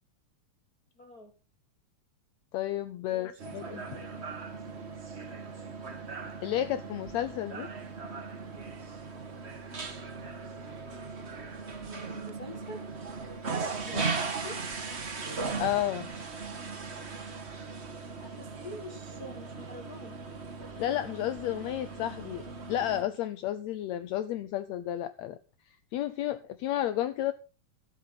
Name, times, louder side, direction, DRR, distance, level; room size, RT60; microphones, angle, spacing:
voice 1, 0.9-1.3 3.1-4.3 11.8-12.8 13.8-14.6 18.2-20.1, left 1 dB, 50° left, 1.0 m, -46 dB
voice 2, 2.5-3.8 6.4-7.7 13.9-14.0 15.6-16.1 20.8-22.4 22.7-25.4 25.9-27.3, left 12 dB, 80° left, 1.6 m, -31 dB
sound 1, 3.4-23.0, right 4 dB, 55° right, 0.7 m, -38 dB
13.0 x 13.0 x 4.0 m
omnidirectional pair, 3.9 m